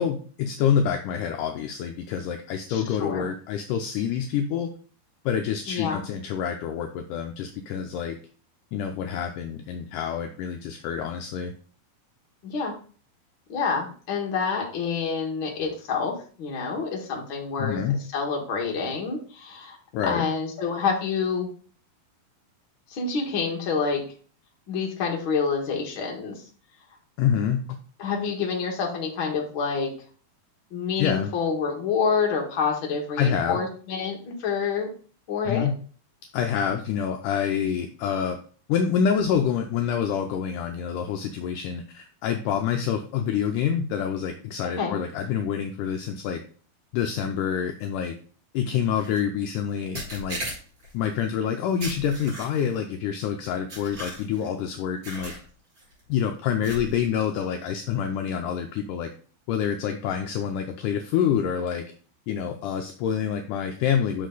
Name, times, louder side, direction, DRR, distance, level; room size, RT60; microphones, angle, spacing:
voice 1, 0.0-4.7 5.3-8.2 8.7-11.5 17.6-18.0 19.9-20.2 27.2-27.6 31.0-31.3 33.2-33.6 35.5-35.7 36.3-38.4 38.7-46.4 46.9-48.1 48.5-50.4 50.9-55.3 56.1-59.1 59.5-61.8 62.3-64.3, left 8 dB, 85° left, 5 dB, 1.8 m, -27 dB
voice 2, 2.7-3.3 5.7-6.0 12.4-12.7 13.5-17.8 18.1-19.8 20.0-21.5 22.9-24.0 24.7-26.4 28.0-29.9 30.7-34.9 35.3-35.7 44.8-45.0, left 5 dB, 45° left, 0 dB, 1.7 m, -27 dB
sound 1, 48.9-49.2 49.9-50.9 51.8-52.8 53.7-54.5 55.0-55.4 55.8-56.0 56.6-57.1, right 1 dB, 30° right, 4.0 m, -36 dB
6.5 x 5.6 x 3.9 m, 0.42 s
omnidirectional pair, 4.4 m